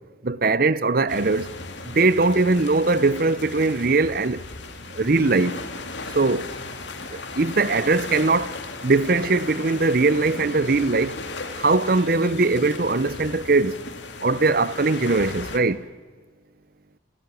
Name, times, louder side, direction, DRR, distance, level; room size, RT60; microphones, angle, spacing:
voice 1, 0.2-1.5 1.9-4.4 4.9-5.6 6.1-6.5 7.1-8.5 8.8-11.2 11.6-13.8 14.2-15.8, right 3 dB, 50° right, 0.8 m, -21 dB
sound 1, 1.1-15.6, left 3 dB, 70° left, 2.4 m, -36 dB
28.0 x 14.5 x 9.7 m
head